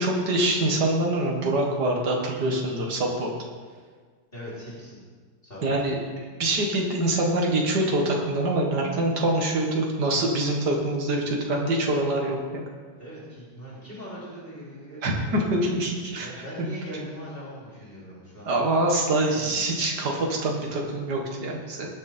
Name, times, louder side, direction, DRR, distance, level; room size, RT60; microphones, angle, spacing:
voice 1, 0.0-3.3 5.6-6.0 6.4-12.6 15.0-16.3 16.6-16.8 18.5-21.9, right 1 dB, 60° right, 0 dB, 2.4 m, -25 dB
voice 2, 4.3-5.0 5.4-5.9 13.0-18.6 19.0-19.7, equal, 30° left, -7 dB, 3.3 m, -41 dB
19.0 x 6.9 x 4.5 m, 1.5 s
omnidirectional pair, 2.1 m